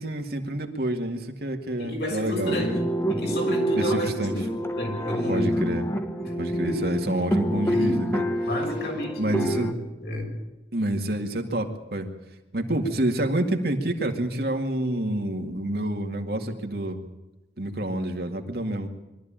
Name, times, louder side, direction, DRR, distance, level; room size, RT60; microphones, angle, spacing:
voice 1, 0.0-2.6 3.7-4.3 5.3-5.9 6.4-8.3 9.2-9.7 10.7-12.1 12.5-17.1 17.6-18.9, right 1 dB, 60° right, 4 dB, 2.2 m, -28 dB
voice 2, 1.8-2.8 3.1-5.5 6.2-7.0 7.6-8.0 8.5-9.8 10.0-10.3, left 1 dB, 65° left, 1 dB, 6.4 m, -31 dB
sound 1, 2.4-9.7, equal, 15° left, 1.4 m, -27 dB
22.5 x 13.5 x 9.0 m, 1.0 s
head